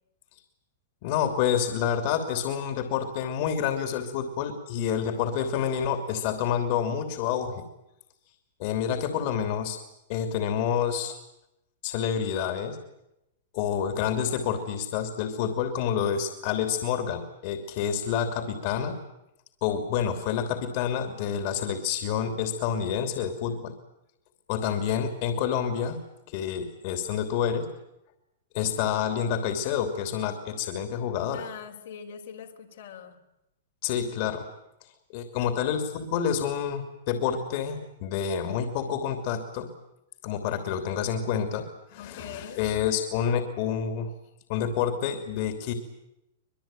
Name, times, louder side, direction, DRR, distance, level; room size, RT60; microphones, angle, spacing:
voice 1, 1.0-7.6 8.6-9.8 10.1-11.2 11.8-12.8 13.5-19.0 19.6-23.7 24.5-26.0 26.3-27.7 28.5-31.5 33.8-34.5 35.1-39.7 40.2-44.1 44.5-45.7, left 8 dB, 50° left, 7 dB, 3.0 m, -28 dB
voice 2, 31.3-33.2 42.0-42.6, left 7 dB, 75° left, 2 dB, 3.8 m, -42 dB
24.0 x 21.5 x 9.1 m, 0.88 s
hypercardioid pair, 130°, 0 cm